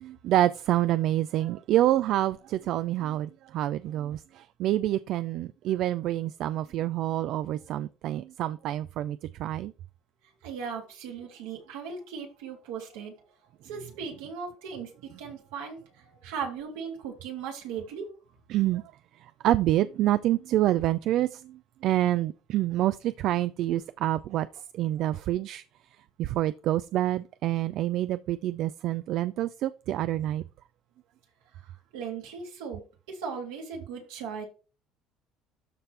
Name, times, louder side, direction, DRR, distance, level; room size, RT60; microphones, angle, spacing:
voice 1, 0.0-9.7 18.5-18.8 19.4-24.5 24.7-25.6 26.2-30.4, right 13 dB, 65° right, 0.4 m, -27 dB
voice 2, 10.4-13.1 13.6-18.1 31.9-34.4, right 6 dB, 90° right, 2.7 m, -38 dB
12.5 x 4.3 x 3.3 m
supercardioid pair, 80°, 0 cm